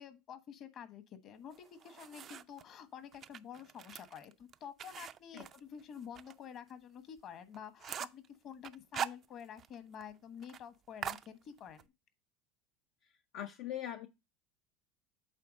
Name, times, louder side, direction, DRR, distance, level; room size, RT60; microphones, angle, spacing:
voice 1, 0.0-11.9, left 8 dB, 50° left, 1.2 m, -49 dB
sound 1, 1.5-2.6 3.1-6.3 6.7-6.8 7.2-7.3 7.5-8.3 8.6-9.7 10.0-10.1 10.4-10.6 11.0-11.9, right 9 dB, 45° right, 0.4 m, -43 dB
voice 2, 13.0-14.1, left 11 dB, 70° left, 0.5 m, -42 dB
8.3 x 3.5 x 5.1 m
hypercardioid pair, 90°, 0 cm